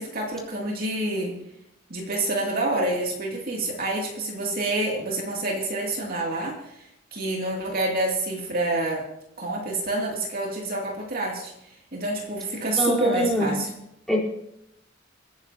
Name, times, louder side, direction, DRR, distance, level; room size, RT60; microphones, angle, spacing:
voice 1, 0.0-1.4 1.9-6.8 7.1-9.1 9.4-11.5 11.9-13.7, right 2 dB, 50° right, -1 dB, 2.6 m, -27 dB
voice 2, 12.8-13.6 14.1-14.2, equal, ahead, -4 dB, 4.2 m, -23 dB
29.0 x 10.5 x 2.9 m, 0.79 s
head